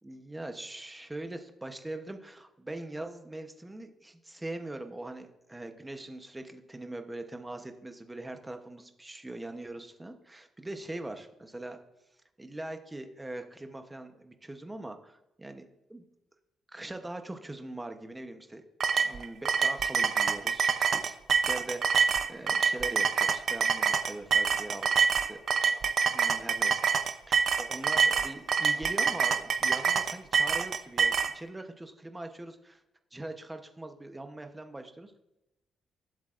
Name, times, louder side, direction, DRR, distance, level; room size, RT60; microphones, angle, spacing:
voice 1, 0.0-11.8 12.4-15.6 15.9-16.1 16.7-18.7 19.0-21.2 21.4-25.4 26.1-32.8 33.1-35.2, right 2 dB, 10° right, 6 dB, 0.8 m, -42 dB
sound 1, 18.8-31.3, right 6 dB, 45° right, 0.5 m, -26 dB
20.0 x 8.0 x 2.5 m, 0.91 s
cardioid pair, 160°, 0 cm